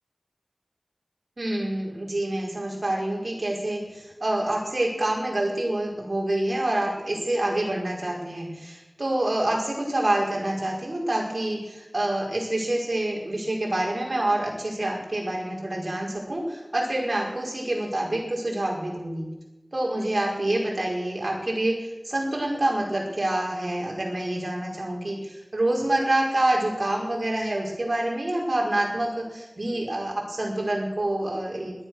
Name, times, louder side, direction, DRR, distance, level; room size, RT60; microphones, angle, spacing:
voice 1, 1.4-19.3 19.7-31.7, right 1 dB, 65° right, -2 dB, 5.1 m, -27 dB
17.0 x 12.0 x 6.4 m, 1.0 s
wide cardioid pair, 45°, 0 cm